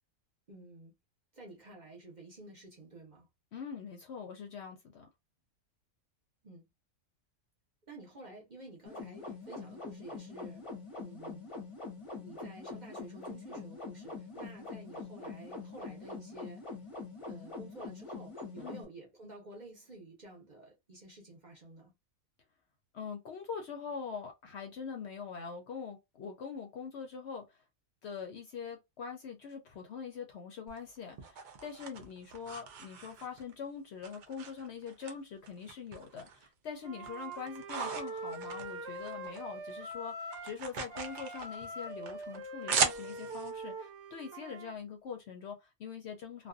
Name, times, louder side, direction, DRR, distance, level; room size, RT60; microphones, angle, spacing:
voice 1, 0.5-0.9 1.3-3.3 6.4-6.7 7.9-10.7 11.0-11.5 12.2-16.6 17.3-21.9, right 2 dB, 40° right, 0.9 m, -51 dB
voice 2, 3.5-5.1 18.6-18.9 22.9-27.6 28.0-46.5, left 6 dB, 65° left, 0.7 m, -43 dB
sound 1, 8.9-18.9, left 3 dB, 30° left, 0.7 m, -44 dB
sound 2, 30.7-33.5 34.0-35.1 35.4-36.5 36.8-39.4 39.7-43.5, right 5 dB, 85° right, 0.4 m, -38 dB
Wind instrument woodwind instrument, 36.8-40.6 40.9-44.7, right 1 dB, 60° right, 1.0 m, -43 dB
2.5 x 2.3 x 2.4 m
omnidirectional pair, 1.4 m